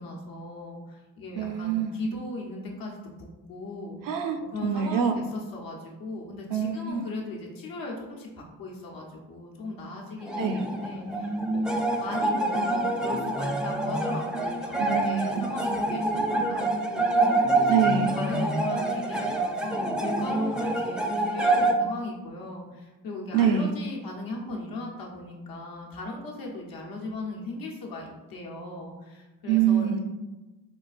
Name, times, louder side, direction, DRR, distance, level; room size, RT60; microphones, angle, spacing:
voice 1, 0.0-4.0 4.5-11.6 12.0-17.7 18.1-30.0, left 2 dB, 75° left, -1 dB, 0.9 m, -38 dB
voice 2, 1.4-2.0 4.0-5.2 6.5-7.1 10.4-10.6 14.8-15.5 17.7-18.1 23.3-23.7 29.5-30.0, right 8 dB, 65° right, 6 dB, 0.5 m, -25 dB
sound 1, 10.2-21.7, right 2 dB, ahead, 0.4 m, -26 dB
3.8 x 2.4 x 2.5 m, 1.1 s
supercardioid pair, 50°, 35 cm